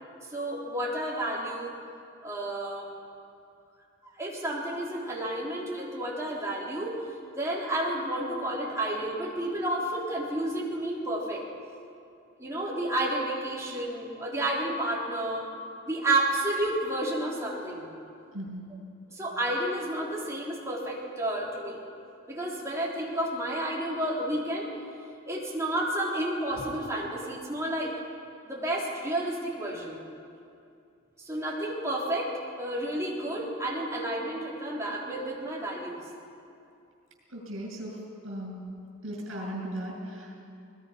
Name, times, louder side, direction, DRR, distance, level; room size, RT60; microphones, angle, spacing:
voice 1, 0.3-1.8 2.2-2.9 4.2-7.0 7.3-11.4 12.4-15.5 15.9-17.9 19.1-21.8 22.3-24.7 25.3-27.9 28.4-30.0 31.2-32.3 32.6-36.0, right 1 dB, 15° right, -5 dB, 3.7 m, -31 dB
voice 2, 37.3-37.9 38.2-38.7 39.0-40.4, right 1 dB, 75° right, -1 dB, 7.1 m, -37 dB
21.0 x 21.0 x 5.8 m, 2.5 s
head